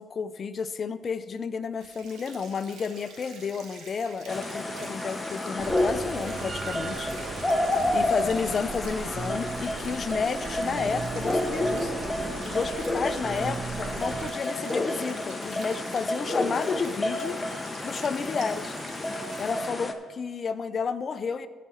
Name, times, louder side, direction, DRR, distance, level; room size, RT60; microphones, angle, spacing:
voice 1, 0.0-7.1 7.6-11.9 12.4-17.4 17.8-18.8 19.4-21.5, left 5 dB, 45° left, 12 dB, 0.6 m, -31 dB
sound 1, 1.8-19.7, right 4 dB, 85° right, 1.8 m, -49 dB
sound 2, 4.3-19.9, left 1 dB, 20° left, 0.9 m, -30 dB
sound 3, 5.6-14.3, right 5 dB, 45° right, 0.3 m, -37 dB
13.5 x 5.1 x 5.6 m, 1.5 s
cardioid pair, 90°, 0 cm